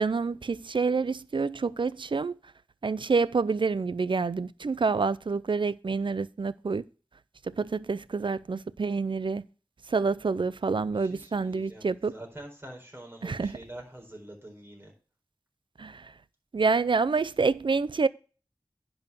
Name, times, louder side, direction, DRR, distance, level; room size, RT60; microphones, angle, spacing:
voice 1, 0.0-2.3 2.8-6.8 7.4-9.4 9.9-12.1 13.2-13.6 15.8-16.1 16.5-18.1, right 4 dB, 70° right, 0.4 m, -27 dB
voice 2, 10.8-14.9, right 1 dB, 25° right, 4.3 m, -46 dB
10.5 x 4.7 x 6.8 m
wide cardioid pair, 50°, 9 cm